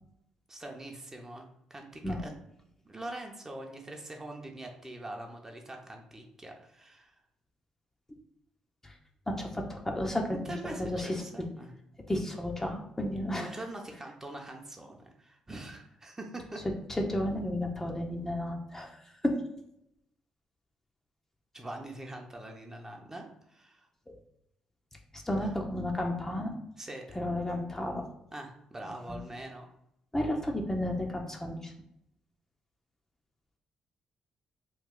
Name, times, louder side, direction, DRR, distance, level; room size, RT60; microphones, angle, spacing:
voice 1, 0.5-2.3 2.8-7.2 10.4-11.7 13.4-16.6 21.5-23.9 25.4-25.5 26.8-27.2 28.3-29.6, right 1 dB, 20° right, 2 dB, 0.7 m, -43 dB
voice 2, 9.3-10.5 10.8-11.2 12.1-13.5 16.9-19.4 25.1-26.5 27.1-28.0 29.1-29.2 30.1-31.7, left 1 dB, 15° left, 1 dB, 0.6 m, -32 dB
3.1 x 2.2 x 3.7 m, 0.80 s
supercardioid pair, 55°, 2 cm